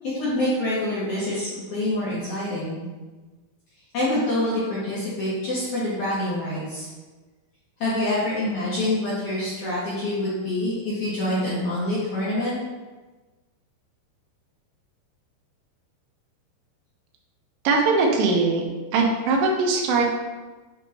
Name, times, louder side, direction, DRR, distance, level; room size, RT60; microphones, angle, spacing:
voice 1, 0.0-2.8 3.9-6.9 7.8-12.6, left 1 dB, 60° left, -10 dB, 2.0 m, -26 dB
voice 2, 17.7-18.6 18.9-20.0, right 3 dB, 85° right, 0 dB, 3.5 m, -20 dB
7.8 x 5.4 x 2.9 m, 1.3 s
omnidirectional pair, 5.4 m